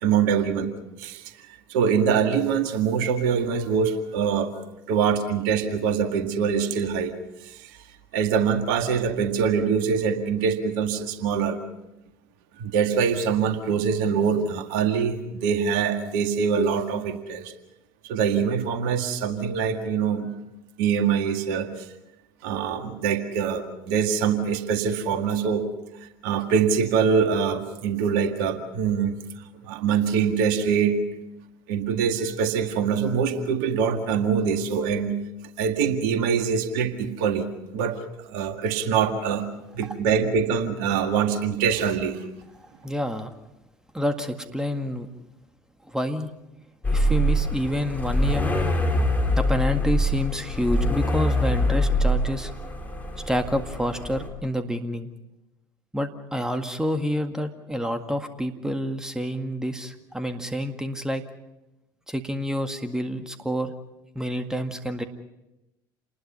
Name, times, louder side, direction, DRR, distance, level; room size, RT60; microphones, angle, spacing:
voice 1, 0.0-1.2 1.7-4.5 4.9-7.1 7.4-7.7 8.1-11.6 12.6-17.5 18.0-20.3 20.8-21.7 22.4-25.7 26.2-29.2 29.6-31.0 31.7-35.2 35.6-37.5 37.7-38.0 38.2-39.5 39.8-42.2, right 6 dB, 65° right, 7 dB, 1.9 m, -24 dB
voice 2, 42.5-43.3 43.9-45.1 45.8-46.3 46.9-48.7 49.4-52.5 53.3-55.1 55.9-61.2 62.1-63.7 64.2-65.0, equal, 5° right, 7 dB, 1.9 m, -28 dB
sound 1, 46.8-54.3, left 1 dB, 15° left, 4.4 m, -24 dB
28.0 x 20.5 x 5.5 m, 0.93 s
figure-of-eight pair, 65°, 12 cm